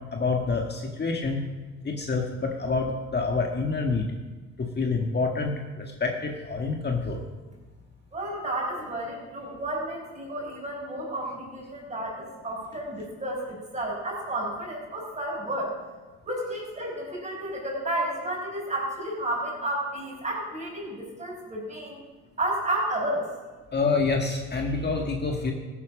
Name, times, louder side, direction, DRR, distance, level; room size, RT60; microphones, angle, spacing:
voice 1, 0.1-1.4 1.8-4.1 4.6-7.2 23.7-25.5, left 4 dB, 35° left, 1 dB, 1.6 m, -27 dB
voice 2, 8.1-15.7 16.2-22.0 22.4-23.3, right 1 dB, 25° right, -2 dB, 5.6 m, -31 dB
15.0 x 8.7 x 6.1 m, 1.3 s
cardioid pair, 90°, 30 cm